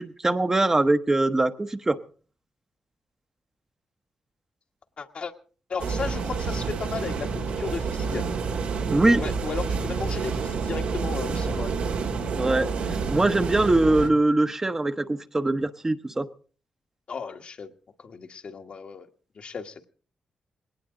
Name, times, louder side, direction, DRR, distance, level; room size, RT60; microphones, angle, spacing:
voice 1, 0.0-2.0 8.9-9.2 12.4-12.7 13.1-16.3, right 2 dB, 20° right, 8 dB, 1.0 m, -22 dB
voice 2, 5.0-5.3 5.7-8.3 9.2-11.7 17.1-17.7 18.0-19.1 19.3-19.8, left 5 dB, 55° left, 5 dB, 1.4 m, -35 dB
sound 1, 5.8-14.1, right 5 dB, 90° right, 2.6 m, -29 dB
20.0 x 18.0 x 3.8 m, 0.40 s
cardioid pair, 90°, 2 cm